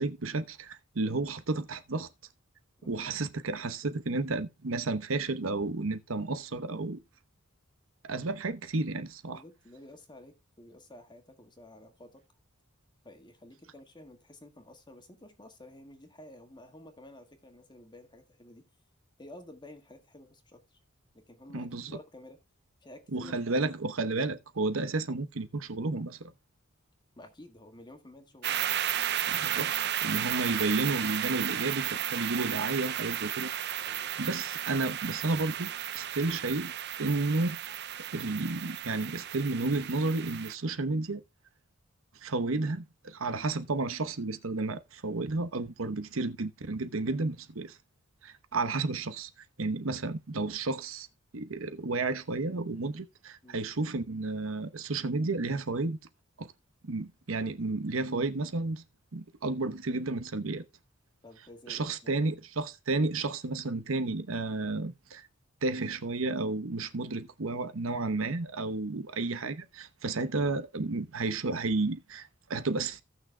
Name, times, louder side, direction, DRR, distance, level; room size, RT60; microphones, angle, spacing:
voice 1, 0.0-2.1 2.9-7.0 8.0-9.4 21.5-21.9 23.1-26.3 29.3-29.7 30.0-33.5 34.2-36.7 37.0-37.8 38.1-41.2 42.2-47.8 48.2-49.3 49.6-51.1 51.3-56.0 56.4-56.5 56.8-58.8 59.1-60.7 61.7-65.3 65.6-73.0, right 3 dB, 75° right, 0.9 m, -32 dB
voice 2, 9.2-12.2 13.0-18.6 19.2-20.8 21.1-22.4 22.8-23.3 27.1-28.6 33.7-34.1 53.4-53.6 61.2-62.4, left 1 dB, 20° left, 1.7 m, -52 dB
sound 1, 28.4-40.5, right 11 dB, 55° right, 0.7 m, -33 dB
17.0 x 6.3 x 2.2 m
head